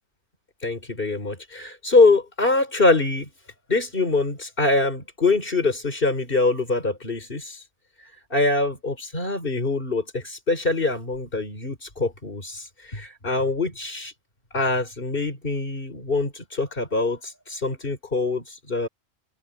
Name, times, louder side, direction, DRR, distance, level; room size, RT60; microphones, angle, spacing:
voice 1, 0.6-3.3 3.7-7.6 8.3-14.1 14.5-18.9, left 3 dB, 45° left, 4.3 m, -24 dB
open air
omnidirectional pair, 1.3 m